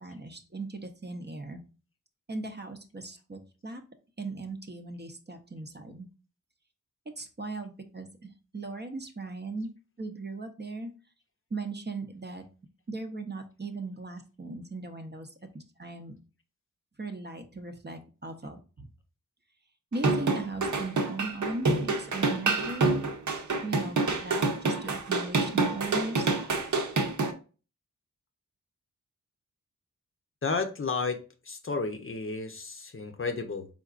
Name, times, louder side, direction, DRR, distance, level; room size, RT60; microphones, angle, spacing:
voice 1, 0.0-1.6 2.3-3.8 4.2-6.1 7.2-9.7 10.0-10.9 11.5-12.4 12.9-16.2 17.0-18.9 19.9-22.9 23.6-26.3, right 3 dB, 30° right, 0.7 m, -38 dB
sound 1, 19.9-27.3, right 3 dB, 60° right, 0.8 m, -27 dB
voice 2, 30.4-31.2 31.4-33.7, left 4 dB, 40° left, 0.6 m, -32 dB
4.4 x 3.8 x 2.4 m
wide cardioid pair, 75°, 34 cm